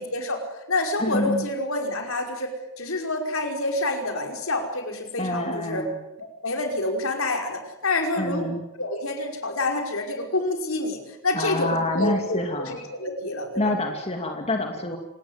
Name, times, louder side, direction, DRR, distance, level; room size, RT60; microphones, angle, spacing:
voice 1, 0.0-5.9 6.4-8.5 8.8-13.7, left 2 dB, 65° left, 3 dB, 5.4 m, -28 dB
voice 2, 1.0-1.5 5.2-5.9 8.1-8.6 11.3-12.8 13.6-15.0, left 1 dB, 30° left, 3 dB, 2.7 m, -27 dB
27.5 x 19.5 x 9.8 m, 0.90 s
head